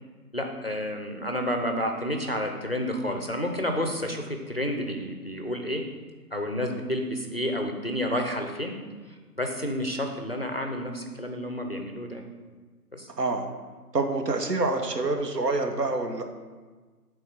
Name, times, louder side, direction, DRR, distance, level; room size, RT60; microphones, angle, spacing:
voice 1, 0.3-5.8 6.3-8.8 9.1-12.2 12.9-13.1, equal, 40° left, 4 dB, 0.4 m, -30 dB
voice 2, 13.9-16.2, right 3 dB, 80° right, 5 dB, 0.9 m, -26 dB
5.5 x 3.6 x 5.9 m, 1.4 s
figure-of-eight pair, 140°, 48 cm